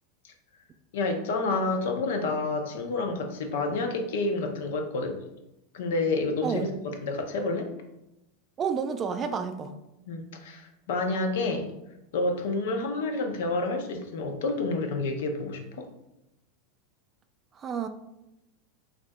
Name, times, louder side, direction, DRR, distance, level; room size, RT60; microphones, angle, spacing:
voice 1, 0.9-5.2 5.7-7.7 10.1-11.7 12.1-15.9, left 3 dB, 65° left, 5 dB, 0.6 m, -29 dB
voice 2, 8.6-9.7 17.6-17.9, right 6 dB, 30° right, 8 dB, 0.4 m, -30 dB
5.8 x 2.5 x 2.2 m, 0.89 s
figure-of-eight pair, 90°, 0 cm